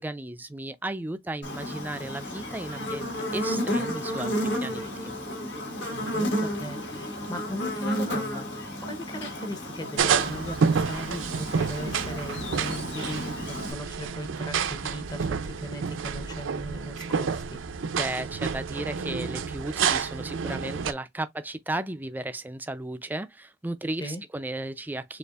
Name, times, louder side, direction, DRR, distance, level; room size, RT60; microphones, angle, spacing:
voice 1, 0.0-4.3 4.6-5.1 18.0-25.2, right 2 dB, 10° right, 0.3 m, -34 dB
Buzz, 1.4-13.7, equal, 65° left, 1.7 m, -32 dB
voice 2, 5.9-17.6 24.0-24.2, equal, 20° left, 0.7 m, -38 dB
sound 1, 10.0-20.9, right 6 dB, 80° right, 0.5 m, -29 dB
6.6 x 2.5 x 2.3 m
head